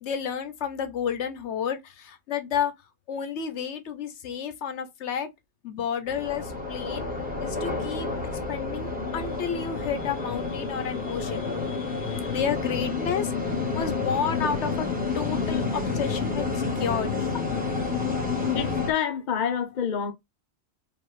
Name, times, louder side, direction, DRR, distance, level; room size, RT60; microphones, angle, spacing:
voice 1, 0.0-2.7 3.1-5.3 5.6-7.1 7.4-8.1 8.5-13.3 13.7-14.9 15.1-17.4, left 7 dB, 75° left, 1.0 m, -31 dB
sound 1, 6.1-18.9, left 4 dB, 10° right, 1.2 m, -29 dB
voice 2, 18.5-20.1, left 8 dB, 45° left, 0.8 m, -27 dB
4.8 x 2.6 x 3.2 m
omnidirectional pair, 1.2 m